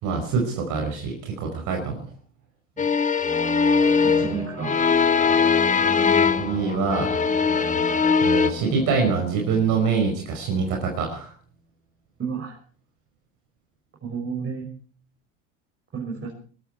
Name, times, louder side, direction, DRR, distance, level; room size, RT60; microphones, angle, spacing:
voice 1, 0.0-2.0 6.4-7.1 8.2-11.3, right 5 dB, 55° right, 2 dB, 5.4 m, -25 dB
sound 1, 2.8-6.6 6.9-8.5, left 5 dB, 20° left, 1.3 m, -20 dB
sound 2, 3.2-10.6, right 1 dB, 10° right, 6.5 m, -34 dB
voice 2, 4.0-4.7 12.2-12.6 14.0-14.7 15.9-16.3, right 6 dB, 30° right, -2 dB, 6.3 m, -31 dB
21.5 x 14.0 x 4.6 m, 0.42 s
supercardioid pair, 95°, 37 cm